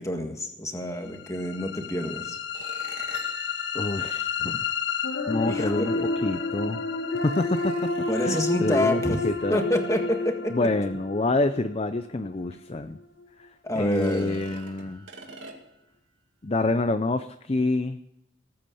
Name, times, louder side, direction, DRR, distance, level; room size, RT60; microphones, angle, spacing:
voice 1, 0.0-2.4 5.4-6.1 8.1-9.2 9.5-10.5 13.6-14.4, left 1 dB, 15° left, 4 dB, 1.7 m, -28 dB
sound 1, 1.2-13.2, left 3 dB, 70° left, 1.3 m, -30 dB
sound 2, 2.5-5.0 6.2-6.3 7.1-8.7 11.9-12.0 12.5-12.6 13.8-15.9, right 3 dB, 75° right, 2.2 m, -46 dB
voice 2, 3.7-4.7 5.3-6.8 7.2-7.9 8.2-9.6 10.5-13.0 13.4-15.0 16.4-18.0, left 2 dB, 30° left, 10 dB, 0.5 m, -27 dB
19.0 x 8.7 x 6.9 m, 0.84 s
head